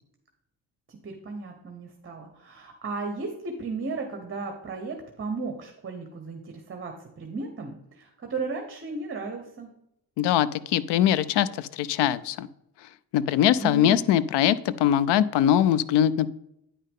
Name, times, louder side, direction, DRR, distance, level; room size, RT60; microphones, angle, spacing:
voice 1, 0.9-9.7 13.5-14.0, right 4 dB, 30° right, 4 dB, 1.1 m, -35 dB
voice 2, 10.2-12.5 13.1-16.3, left 10 dB, 85° left, 18 dB, 0.5 m, -22 dB
9.5 x 5.5 x 3.7 m, 0.81 s
cardioid pair, 110°, 40 cm